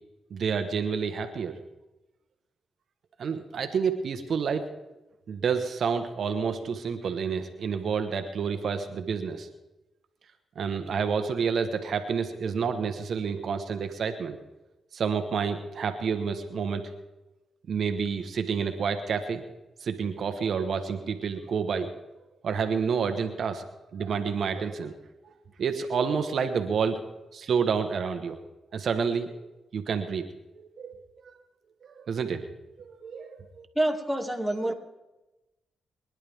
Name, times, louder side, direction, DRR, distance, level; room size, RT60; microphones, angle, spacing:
voice 1, 0.3-1.6 3.2-4.7 5.3-9.5 10.5-14.4 14.9-16.9 17.7-19.4 19.8-21.9 22.4-23.6 23.9-24.9 25.2-25.3 25.6-28.4 28.7-30.2 30.5-30.9 31.2-31.3 31.8-32.4 32.8-33.7, right 6 dB, 65° right, 7 dB, 1.2 m, -29 dB
voice 2, 33.8-34.7, right 1 dB, ahead, 2 dB, 2.3 m, -27 dB
23.5 x 11.0 x 3.6 m, 1.0 s
supercardioid pair, 55°, 0 cm